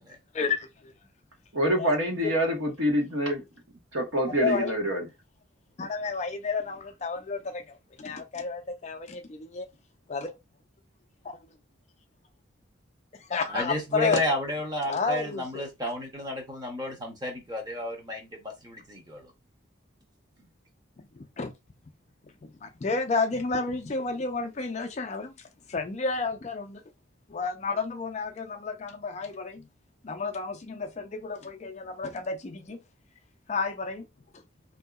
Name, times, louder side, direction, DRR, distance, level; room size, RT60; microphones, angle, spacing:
voice 1, 0.3-0.9 1.8-1.9 2.2-2.3 4.4-4.7 5.8-9.7 10.1-10.3 11.2-11.4 13.2-14.3 14.8-15.7 21.1-21.5 22.4-26.8 27.3-29.7 30.0-32.8 33.5-34.1, left 4 dB, 35° left, 0.4 m, -31 dB
voice 2, 1.5-3.4 3.9-5.0, equal, 75° right, 1.1 m, -26 dB
voice 3, 13.5-19.2, left 1 dB, 20° right, 0.8 m, -32 dB
3.6 x 2.7 x 2.3 m
head